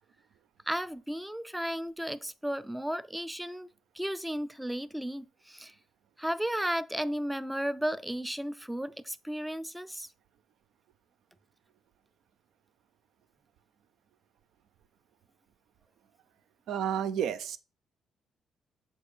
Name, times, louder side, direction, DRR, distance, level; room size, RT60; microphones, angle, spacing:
voice 1, 0.7-3.7 3.9-5.7 6.2-10.1, equal, 5° right, 0.4 m, -34 dB
voice 2, 16.7-17.6, right 9 dB, 80° right, 0.4 m, -30 dB
6.8 x 4.4 x 3.3 m
cardioid pair, 90°, 0 cm